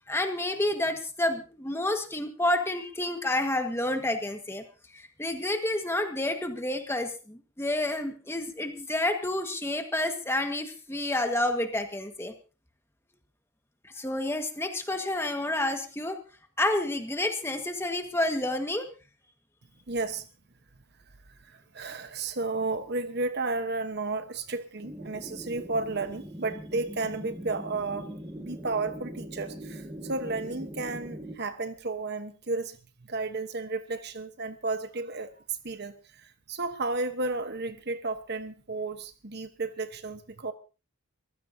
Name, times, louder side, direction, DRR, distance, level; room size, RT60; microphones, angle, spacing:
voice 1, 0.1-4.6 4.9-12.3 13.9-16.2 16.6-18.9, left 1 dB, 10° left, 1.6 m, -29 dB
voice 2, 19.9-20.3 21.5-28.1 28.4-32.8 33.1-35.3 35.6-40.5, right 3 dB, 50° right, 1.1 m, -33 dB
sound 1, 24.8-31.4, equal, 10° right, 1.8 m, -41 dB
24.0 x 15.5 x 2.8 m
head